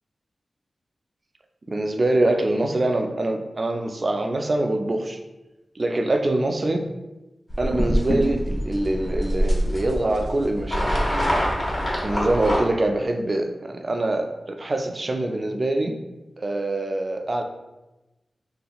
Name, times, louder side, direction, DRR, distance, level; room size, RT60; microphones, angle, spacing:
voice 1, 1.7-5.2 5.8-6.9 7.6-10.9 12.0-16.0 16.4-17.4, right 2 dB, 40° right, 4 dB, 0.3 m, -24 dB
sound 1, 7.5-12.6, equal, 40° left, 0.9 m, -24 dB
3.2 x 2.9 x 2.3 m, 1.1 s
wide cardioid pair, 85°, 0 cm